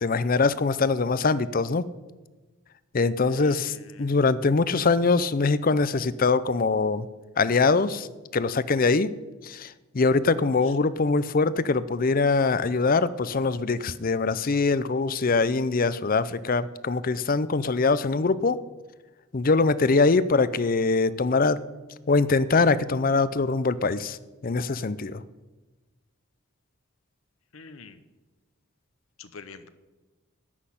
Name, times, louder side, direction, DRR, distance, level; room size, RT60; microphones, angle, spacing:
voice 1, 0.0-1.8 2.9-7.1 7.4-8.1 8.3-9.1 9.4-18.6 19.3-21.6 22.1-24.2 24.4-25.2, left 4 dB, 45° left, 17 dB, 0.5 m, -23 dB
voice 2, 3.2-4.3 10.6-10.7 27.5-28.0 29.2-29.7, left 4 dB, 85° left, 11 dB, 1.0 m, -46 dB
13.5 x 6.4 x 9.9 m, 1.2 s
head